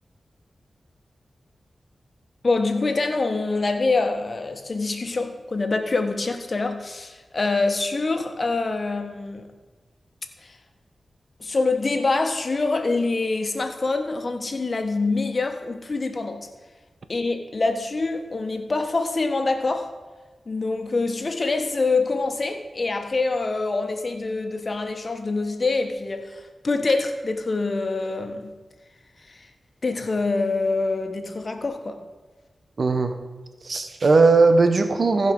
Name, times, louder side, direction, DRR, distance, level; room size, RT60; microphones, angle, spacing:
voice 1, 2.4-9.5 10.4-10.6 11.4-16.5 17.1-19.9 20.5-28.5 29.2-29.5 29.8-32.0, left 3 dB, 50° left, 6 dB, 1.3 m, -25 dB
voice 2, 32.8-33.2 33.6-35.3, right 3 dB, 60° right, 8 dB, 0.9 m, -18 dB
15.0 x 5.5 x 5.4 m, 1.3 s
cardioid pair, 55°, 0 cm